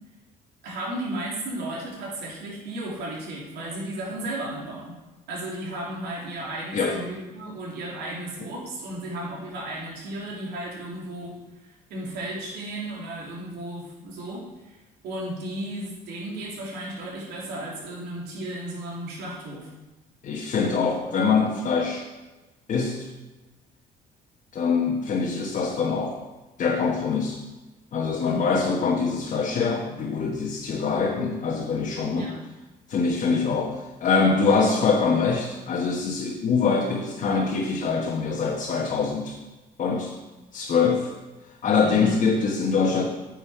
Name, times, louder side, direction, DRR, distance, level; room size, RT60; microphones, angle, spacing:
voice 1, 0.6-5.0 5.3-14.8 15.0-19.7 28.2-28.5 32.2-32.4 41.8-42.1, right 1 dB, 80° right, -4 dB, 3.1 m, -34 dB
voice 2, 20.2-22.0 22.7-23.1 24.5-26.2 26.6-27.4 27.9-32.3 32.9-39.4 39.8-40.1 40.5-41.1 41.6-43.0, left 5 dB, 50° left, -2 dB, 1.4 m, -24 dB
9.2 x 6.5 x 4.9 m, 1.1 s
cardioid pair, 110°, 17 cm